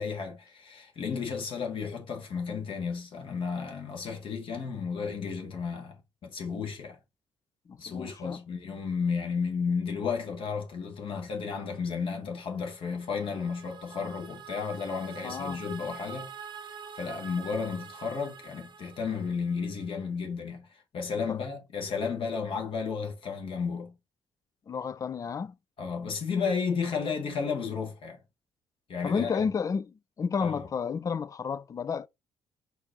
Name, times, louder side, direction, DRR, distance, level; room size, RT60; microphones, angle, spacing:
voice 1, 0.0-7.0 7.8-16.3 16.9-20.7 20.9-23.9 25.8-28.2 28.9-29.5 30.4-30.7, left 5 dB, 50° left, 1.3 m, -33 dB
voice 2, 7.7-8.4 15.2-15.6 21.3-21.4 24.7-25.5 29.0-32.1, left 6 dB, 30° left, 0.3 m, -31 dB
sound 1, 12.7-19.8, right 7 dB, 40° right, 0.7 m, -46 dB
4.5 x 2.6 x 4.0 m
figure-of-eight pair, 45°, 12 cm